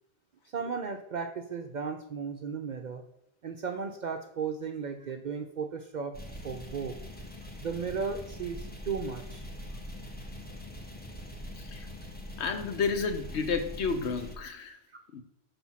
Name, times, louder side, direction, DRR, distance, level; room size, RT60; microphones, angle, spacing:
voice 1, 0.5-3.0 3.4-6.2 6.4-7.0 7.6-9.5 14.9-15.0, right 5 dB, 55° right, 0.5 m, -35 dB
sound 1, 6.1-14.3, left 1 dB, 10° left, 0.7 m, -43 dB
voice 2, 11.6-11.9 12.4-14.8 15.1-15.2, left 5 dB, 75° left, 1.0 m, -31 dB
5.9 x 3.4 x 5.6 m
omnidirectional pair, 1.2 m